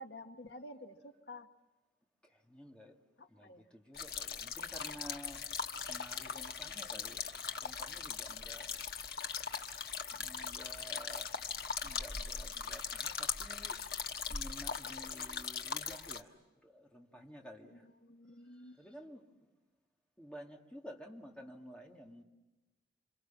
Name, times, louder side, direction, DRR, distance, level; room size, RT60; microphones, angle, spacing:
voice 1, 0.0-1.5 3.2-3.7 17.7-18.8, left 1 dB, 80° left, 6 dB, 1.4 m, -51 dB
voice 2, 2.2-3.0 3.3-5.5 5.9-7.3 7.6-8.7 9.2-9.4 10.1-11.3 11.8-13.8 14.3-16.4 16.6-17.8 18.8-19.3 20.2-22.2, equal, 5° left, 0 dB, 2.2 m, -52 dB
sound 1, 3.9-16.2, left 6 dB, 60° left, 1.3 m, -40 dB
28.0 x 27.0 x 7.3 m, 1.1 s
head